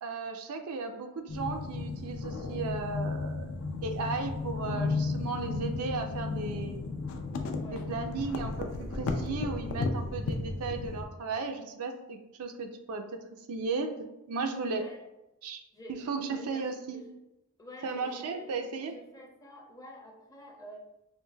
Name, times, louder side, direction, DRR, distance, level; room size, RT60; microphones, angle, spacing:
voice 1, 0.0-3.5 3.8-6.8 7.7-13.2 13.5-13.9 14.3-14.8 15.4-15.6 16.1-17.0 17.8-18.9, right 4 dB, 75° right, 5 dB, 0.4 m, -35 dB
sound 1, 1.3-11.1, left 3 dB, 70° left, 0.4 m, -34 dB
voice 2, 7.6-7.9 14.7-15.0 15.7-16.6 16.9-17.1 17.6-18.5 18.8-20.8, equal, 15° left, 0 dB, 0.5 m, -49 dB
4.6 x 2.6 x 2.2 m, 0.93 s
head